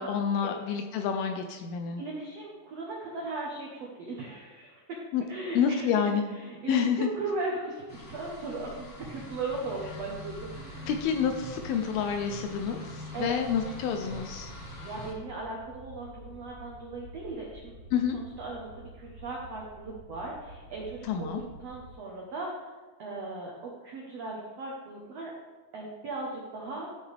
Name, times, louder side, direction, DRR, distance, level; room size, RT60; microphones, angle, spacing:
voice 1, 0.0-2.0 5.1-5.2 5.6-6.3 6.7-7.1 10.9-14.5 17.9-18.2 21.0-21.4, left 7 dB, 80° left, 5 dB, 2.4 m, -28 dB
voice 2, 2.0-4.8 5.3-10.9 13.1-13.3 14.8-17.7 18.1-22.6 23.0-23.5 23.8-25.3 25.7-26.9, right 3 dB, 80° right, -3 dB, 1.4 m, -38 dB
sound 1, 7.9-15.1, left 2 dB, 50° left, 1.8 m, -45 dB
sound 2, 8.9-15.0, right 3 dB, 50° right, 2.9 m, -50 dB
sound 3, 9.8-21.9, right 1 dB, 15° right, 2.3 m, -50 dB
13.0 x 7.0 x 3.5 m, 1.3 s
omnidirectional pair, 4.8 m